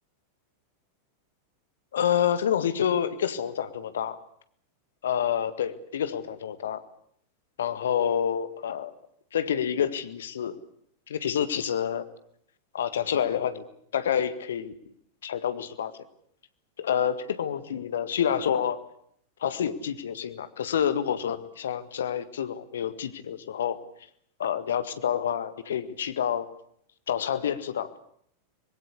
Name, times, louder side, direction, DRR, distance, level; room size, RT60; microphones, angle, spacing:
voice 1, 1.9-4.2 5.0-6.8 7.6-8.9 9.3-10.5 11.1-12.1 12.7-13.6 13.9-14.7 15.2-15.9 16.8-18.8 19.4-23.8 24.4-26.5 27.1-27.9, left 9 dB, 65° left, 12 dB, 1.8 m, -28 dB
24.5 x 21.5 x 8.4 m, 0.68 s
figure-of-eight pair, 90°, 0 cm